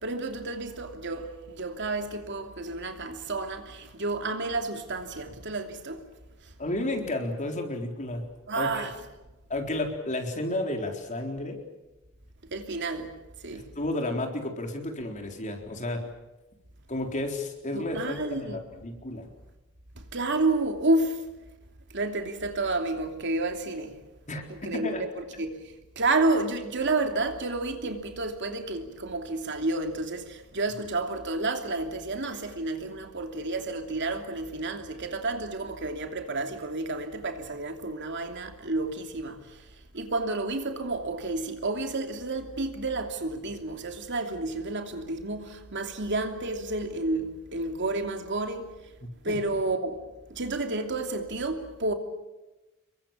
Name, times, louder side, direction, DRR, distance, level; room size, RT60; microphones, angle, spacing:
voice 1, 0.0-6.0 8.5-8.9 12.5-13.1 13.4-13.7 17.7-18.6 20.1-21.2 21.9-23.9 24.6-25.6 26.0-39.4 39.9-48.7 49.2-50.0 50.3-51.9, right 2 dB, 55° right, 2.9 m, -30 dB
voice 2, 6.6-8.2 8.6-8.9 9.5-11.6 13.5-16.0 16.9-19.3 24.3-25.0 49.0-49.4, left 1 dB, 35° left, 4.0 m, -32 dB
28.0 x 23.0 x 7.5 m
head